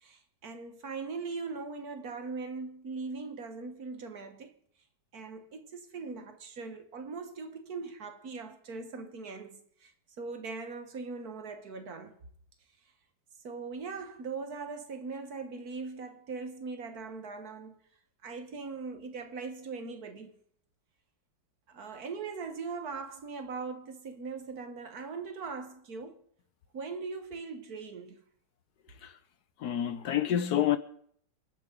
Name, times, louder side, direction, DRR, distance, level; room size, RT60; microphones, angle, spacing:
voice 1, 0.0-4.6 5.1-9.9 10.2-12.2 13.4-17.8 18.2-20.4 21.7-26.2 26.7-28.2, right 4 dB, 60° right, 1.7 m, -40 dB
voice 2, 29.6-30.8, left 11 dB, 65° left, 1.3 m, -27 dB
28.0 x 9.5 x 3.9 m
omnidirectional pair, 1.9 m